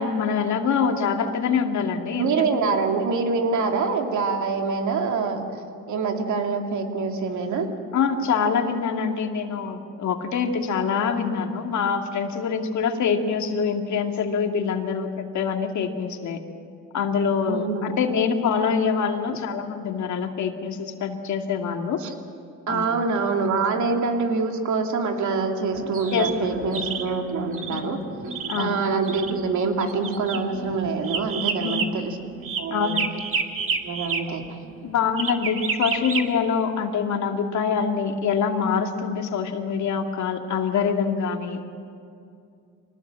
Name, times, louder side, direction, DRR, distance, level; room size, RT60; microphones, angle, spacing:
voice 1, 0.0-2.8 7.9-16.4 16.9-22.0 22.7-23.0 26.1-26.5 27.7-27.9 28.5-28.8 31.6-31.9 32.7-33.2 34.8-41.6, left 6 dB, 70° left, 4 dB, 2.3 m, -25 dB
voice 2, 2.2-5.6 5.9-7.7 17.5-17.9 22.0-22.1 22.7-28.0 28.6-32.2 32.6-33.0 33.8-34.4 34.7-34.8, right 4 dB, 70° right, 3 dB, 2.9 m, -25 dB
sound 1, 25.7-34.2 35.2-36.2, right 5 dB, 45° right, 2.3 m, -30 dB
24.5 x 19.5 x 7.6 m, 2.5 s
cardioid pair, 90°, 30 cm